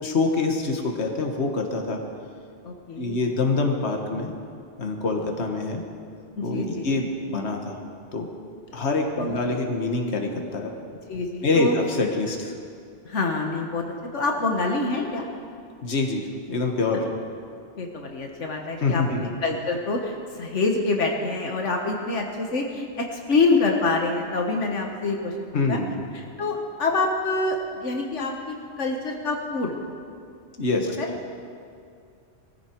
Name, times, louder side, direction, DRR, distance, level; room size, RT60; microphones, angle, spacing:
voice 1, 0.0-2.0 3.0-4.3 4.8-5.8 6.4-7.8 8.1-8.3 8.7-10.7 11.4-12.5 15.8-17.1 18.8-19.2 25.5-26.0 30.6-30.9, left 3 dB, 65° left, 2 dB, 1.7 m, -25 dB
voice 2, 2.6-3.4 5.1-5.3 6.4-6.9 9.2-9.4 11.1-11.8 13.1-13.8 14.1-15.3 17.8-25.8 26.1-29.7 31.0-31.4, left 3 dB, 85° left, 1 dB, 1.7 m, -26 dB
21.0 x 15.0 x 4.6 m, 2.4 s
omnidirectional pair, 1.2 m